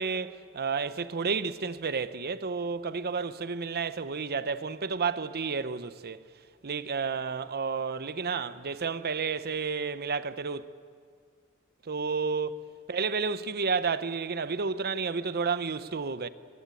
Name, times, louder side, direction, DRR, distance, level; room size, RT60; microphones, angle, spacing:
voice 1, 0.0-6.2 6.6-10.6 11.9-12.6 12.9-16.3, right 5 dB, 45° right, 0.8 m, -31 dB
22.0 x 20.0 x 9.1 m
head